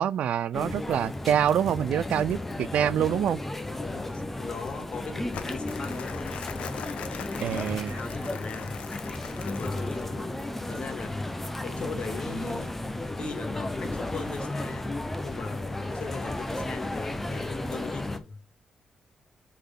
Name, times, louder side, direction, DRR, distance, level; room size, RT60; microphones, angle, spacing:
voice 1, 0.0-3.4 7.4-8.0, right 9 dB, 75° right, 0.4 m, -26 dB
sound 1, 0.5-18.2, left 1 dB, 10° left, 0.9 m, -34 dB
voice 2, 3.8-6.2 7.5-8.8 9.4-10.3 10.6-11.3 11.6-12.8 13.2-14.9 15.2-18.4, left 4 dB, 50° left, 2.2 m, -39 dB
Crumpling crinkling, 5.3-10.2, left 8 dB, 85° left, 1.0 m, -41 dB
8.3 x 4.1 x 3.9 m
wide cardioid pair, 140°, 2 cm